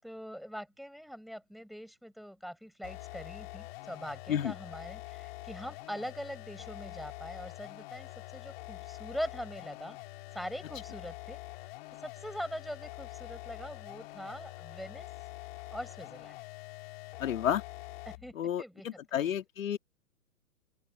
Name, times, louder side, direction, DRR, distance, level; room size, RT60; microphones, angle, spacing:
voice 1, 0.0-10.0 10.3-11.4 12.0-15.1 15.7-16.4 18.1-19.0, equal, ahead, 7.7 m, -42 dB
sound 1, 2.8-18.3, left 20 dB, 40° left, 4.3 m, -45 dB
voice 2, 17.2-17.6 18.3-19.8, left 10 dB, 65° left, 2.7 m, -31 dB
open air
hypercardioid pair, 135°, 44 cm